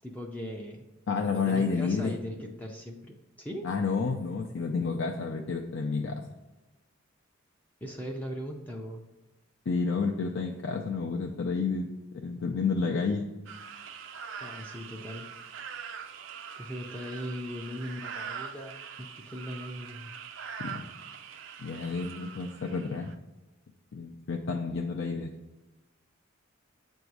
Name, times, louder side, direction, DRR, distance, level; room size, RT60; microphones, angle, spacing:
voice 1, 0.0-0.8 1.3-3.7 7.8-9.1 14.4-15.3 16.6-20.1, equal, 10° left, 0 dB, 0.4 m, -39 dB
voice 2, 1.1-2.2 3.6-6.2 9.7-11.9 12.2-13.3 20.6-20.9 21.6-23.1 23.9-25.3, left 4 dB, 65° left, 1 dB, 0.5 m, -30 dB
sound 1, 13.5-23.2, right 7 dB, 65° right, 0.4 m, -43 dB
7.8 x 2.7 x 4.6 m, 1.1 s
head